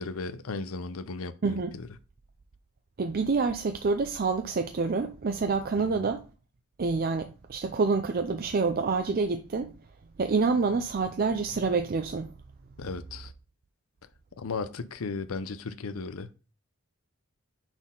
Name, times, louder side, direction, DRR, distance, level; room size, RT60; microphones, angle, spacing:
voice 1, 0.0-1.9 5.8-6.1 12.8-13.3 14.4-16.3, left 4 dB, 75° left, 0.6 m, -36 dB
voice 2, 1.4-1.8 3.0-6.2 6.8-9.7 10.2-12.3, right 4 dB, 45° right, 0.5 m, -27 dB
6.0 x 4.2 x 3.7 m
head